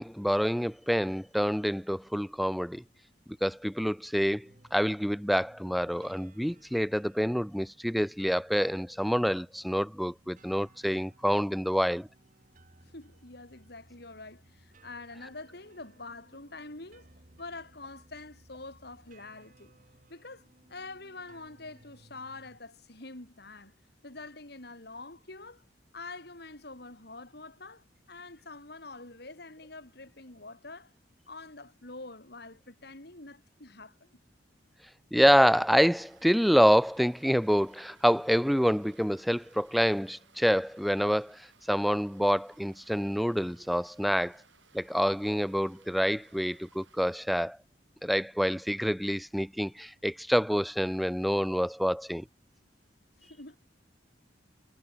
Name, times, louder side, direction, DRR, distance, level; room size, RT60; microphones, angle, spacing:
voice 1, 0.0-2.8 3.4-12.1 35.1-44.4 44.7-47.6 48.0-52.2, equal, ahead, 0.3 m, -27 dB
sound 1, 4.4-22.6, right 1 dB, 45° right, 2.2 m, -61 dB
voice 2, 12.8-17.1 17.4-19.7 20.1-23.8 24.0-25.6 25.9-30.9 31.3-34.2 53.2-53.6, left 3 dB, 60° left, 3.5 m, -46 dB
sound 2, 35.2-47.3, right 6 dB, 90° right, 6.3 m, -63 dB
head